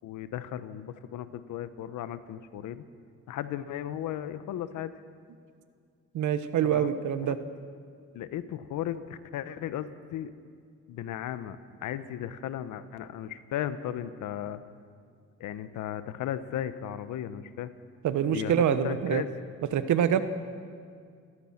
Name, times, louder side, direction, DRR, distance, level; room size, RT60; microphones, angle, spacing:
voice 1, 0.0-2.8 3.3-4.9 6.6-6.9 7.2-7.4 8.1-10.3 10.9-11.6 11.8-14.6 15.4-17.7 18.3-18.5 18.8-19.3, left 11 dB, 85° left, 12 dB, 1.1 m, -35 dB
voice 2, 6.1-7.4 18.0-19.2 19.7-20.2, right 9 dB, 75° right, 12 dB, 1.3 m, -25 dB
29.0 x 16.5 x 5.9 m, 2.1 s
cardioid pair, 90°, 30 cm